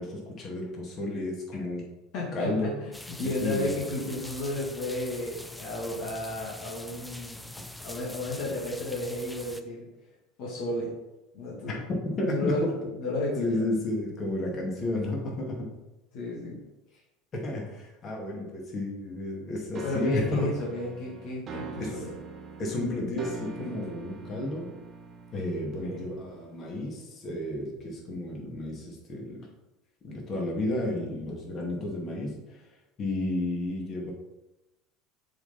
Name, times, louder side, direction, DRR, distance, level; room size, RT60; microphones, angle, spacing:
voice 1, 0.0-1.8 2.3-2.7 3.2-3.7 11.7-11.8 12.2-12.7 13.4-15.7 17.3-20.5 21.8-21.9 22.6-24.7 25.3-29.5 30.0-32.3 33.0-34.1, left 1 dB, 40° left, -1 dB, 2.2 m, -32 dB
voice 2, 2.1-7.5 7.8-9.9 10.4-10.9 11.3-11.8 12.2-13.6 16.1-16.6 19.8-22.1 25.8-26.1, left 2 dB, 60° left, -4 dB, 1.8 m, -33 dB
sound 1, 2.9-9.6, left 1 dB, 5° left, 0.5 m, -43 dB
sound 2, 19.7-26.6, right 4 dB, 40° right, 1.0 m, -43 dB
6.9 x 4.0 x 4.2 m, 0.98 s
hypercardioid pair, 80°, 0 cm